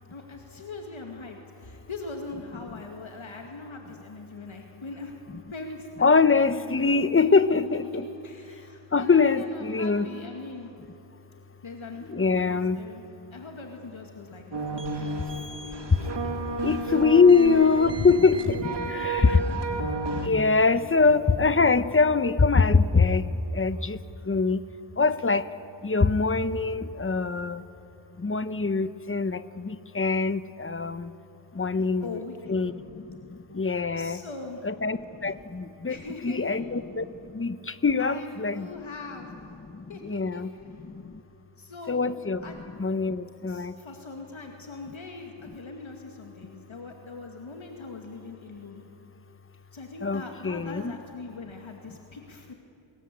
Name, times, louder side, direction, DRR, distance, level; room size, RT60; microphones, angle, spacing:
voice 1, 0.1-5.2 5.5-7.6 8.2-10.7 11.6-13.0 13.3-15.3 15.6-16.6 18.6-19.6 31.8-32.5 34.0-34.7 35.2-35.3 35.9-36.6 38.0-39.3 39.9-40.8 41.6-42.1 42.4-42.6 43.5-48.8 49.7-52.5, left 3 dB, 70° left, 2 dB, 2.3 m, -41 dB
voice 2, 6.0-8.0 8.9-10.1 12.1-12.8 16.6-18.7 19.0-19.4 20.3-23.2 23.5-24.0 24.3-24.6 25.0-25.4 25.8-27.6 28.2-29.4 29.6-31.1 31.6-32.2 32.5-32.7 33.6-34.2 34.6-35.0 35.2-36.0 36.2-37.0 37.3-37.5 37.8-38.7 40.1-40.5 41.9-42.4 42.8-43.7 50.0-50.9, left 4 dB, 25° left, 13 dB, 0.9 m, -23 dB
sound 1, 14.5-20.3, right 3 dB, 55° right, 2.3 m, -32 dB
27.5 x 21.0 x 8.6 m, 2.8 s
wide cardioid pair, 85°, 49 cm